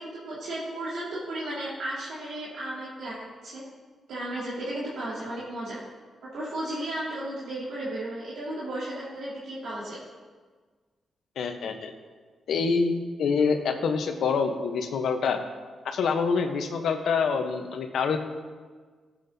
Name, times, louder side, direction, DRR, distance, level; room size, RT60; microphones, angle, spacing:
voice 1, 0.0-3.2 3.4-3.6 4.1-5.8 6.3-10.0, right 1 dB, 85° right, -8 dB, 2.2 m, -34 dB
voice 2, 11.4-11.9 12.5-15.4 15.8-18.2, left 5 dB, 80° left, 6 dB, 0.9 m, -26 dB
14.5 x 7.5 x 2.7 m, 1.5 s
cardioid pair, 85°, 0 cm